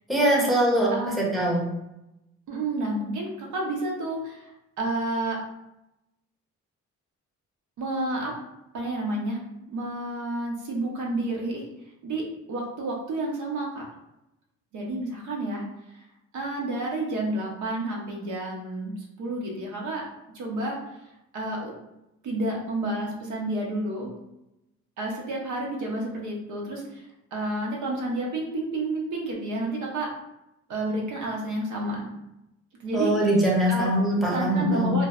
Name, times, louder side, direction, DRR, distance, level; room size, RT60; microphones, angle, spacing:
voice 1, 0.1-0.9 1.2-1.6 32.9-34.9, right 1 dB, ahead, -5 dB, 0.7 m, -22 dB
voice 2, 0.9-1.2 2.5-4.5 4.8-5.4 7.8-8.3 8.7-9.4 9.7-11.6 12.0-13.8 14.7-15.6 15.9-16.0 16.3-20.0 20.3-20.8 21.3-21.7 22.2-24.1 25.0-27.1 27.3-30.1 30.7-32.1 32.8-33.1 33.7-33.9 34.3-35.1, right 2 dB, 75° right, -1 dB, 0.7 m, -30 dB
2.5 x 2.1 x 2.3 m, 0.89 s
cardioid pair, 90°, 30 cm